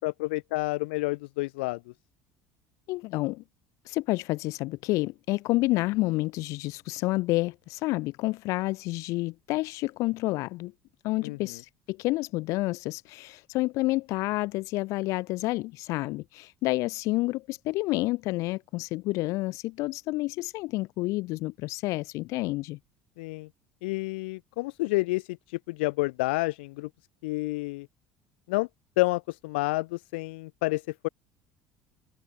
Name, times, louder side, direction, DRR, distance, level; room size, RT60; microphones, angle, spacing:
voice 1, 0.0-1.8 11.2-11.6 23.2-23.5 23.8-26.9 27.2-27.9 28.5-28.7 29.0-31.1, left 23 dB, 90° left, 1.1 m, -29 dB
voice 2, 2.9-3.4 3.9-10.7 11.0-22.8, left 20 dB, 70° left, 3.6 m, -29 dB
open air
supercardioid pair, 100°, 6 cm